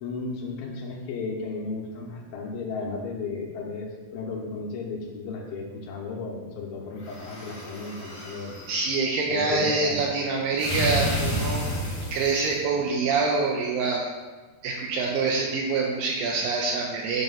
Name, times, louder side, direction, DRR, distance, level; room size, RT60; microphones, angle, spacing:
voice 1, 0.0-8.6 9.3-10.1, left 4 dB, 75° left, -1 dB, 2.6 m, -34 dB
sound 1, 7.0-8.7 10.6-12.5, equal, 40° left, 1.1 m, -30 dB
voice 2, 8.7-14.1 14.6-17.2, right 4 dB, 80° right, -1 dB, 2.2 m, -26 dB
7.9 x 2.9 x 5.6 m, 1.3 s
omnidirectional pair, 4.3 m